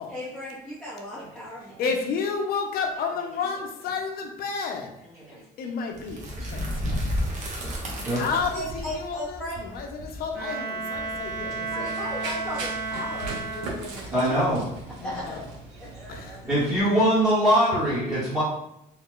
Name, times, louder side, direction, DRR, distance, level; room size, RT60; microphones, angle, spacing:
voice 1, 0.1-1.8 8.3-9.6 11.7-14.4 15.0-15.4 15.7-16.4 17.8-18.0, equal, ahead, -9 dB, 0.8 m, -36 dB
voice 2, 1.8-5.0 5.6-7.0 8.1-11.9 15.0-15.5 16.1-16.3, left 5 dB, 60° left, 3 dB, 0.6 m, -31 dB
sound 1, 5.9-11.8, equal, 45° right, 0.9 m, -32 dB
voice 3, 7.3-7.7 8.0-8.2 14.1-14.7 16.5-18.4, equal, 15° right, -11 dB, 1.1 m, -23 dB
Bowed string instrument, 10.3-14.1, right 4 dB, 65° right, 1.3 m, -33 dB
Run, 11.2-16.8, right 3 dB, 85° right, 0.9 m, -40 dB
3.1 x 2.2 x 3.6 m, 0.80 s
cardioid pair, 110°, 17 cm